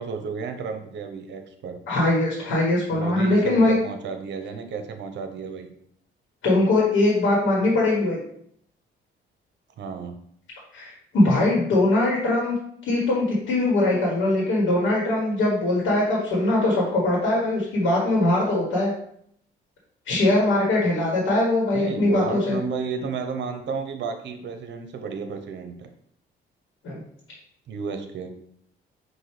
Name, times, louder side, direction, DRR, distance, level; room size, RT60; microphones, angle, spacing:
voice 1, 0.0-1.8 2.9-5.7 9.8-10.1 21.7-25.9 27.7-28.3, right 5 dB, 65° right, 6 dB, 0.7 m, -32 dB
voice 2, 1.9-3.7 6.4-8.2 10.7-12.5 12.9-18.9 20.1-22.6 26.8-27.0, left 2 dB, 80° left, -4 dB, 1.5 m, -21 dB
5.6 x 2.6 x 3.2 m, 0.67 s
cardioid pair, 90°, 20 cm